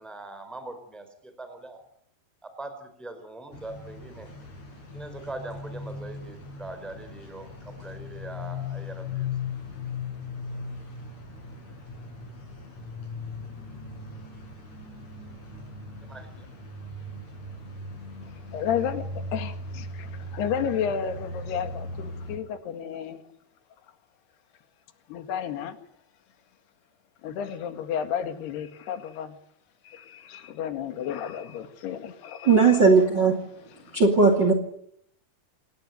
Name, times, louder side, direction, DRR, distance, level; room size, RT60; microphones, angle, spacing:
voice 1, 0.0-1.8 2.4-4.3 4.9-9.3 16.0-16.5, right 2 dB, ahead, 8 dB, 4.4 m, -41 dB
sound 1, 3.5-22.4, left 3 dB, 45° left, 8.2 m, -38 dB
voice 2, 18.5-19.1 19.3-23.2 25.1-25.8 27.2-29.4 29.9-32.8 33.9-34.0, left 8 dB, 80° left, 8 dB, 4.0 m, -32 dB
voice 3, 32.5-33.4 33.9-34.5, right 4 dB, 30° right, 7 dB, 2.6 m, -18 dB
28.5 x 19.0 x 9.5 m, 0.73 s
omnidirectional pair, 4.6 m